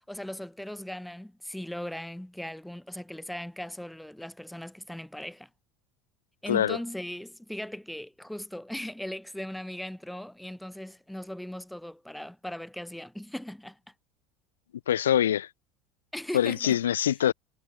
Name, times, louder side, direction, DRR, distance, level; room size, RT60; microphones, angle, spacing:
voice 1, 0.1-5.5 6.4-13.8 16.1-16.8, left 1 dB, 5° left, 2.5 m, -38 dB
voice 2, 14.9-15.5 16.3-17.3, left 10 dB, 75° left, 1.0 m, -24 dB
figure-of-eight pair, 65°, 0 cm